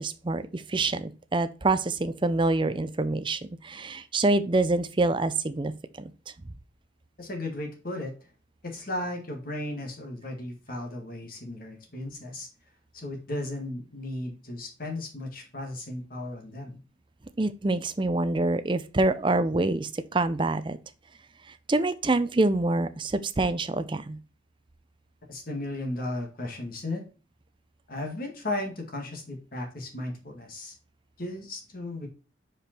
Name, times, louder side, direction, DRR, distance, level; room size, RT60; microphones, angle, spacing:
voice 1, 0.0-5.7 6.0-6.1 17.4-20.8 21.7-24.2, right 2 dB, 25° right, 11 dB, 0.5 m, -26 dB
voice 2, 7.2-8.1 8.6-12.5 12.9-16.8 25.3-27.0 27.9-30.7 31.2-32.1, left 1 dB, 45° left, 2 dB, 1.7 m, -35 dB
5.2 x 4.9 x 4.3 m, 0.34 s
head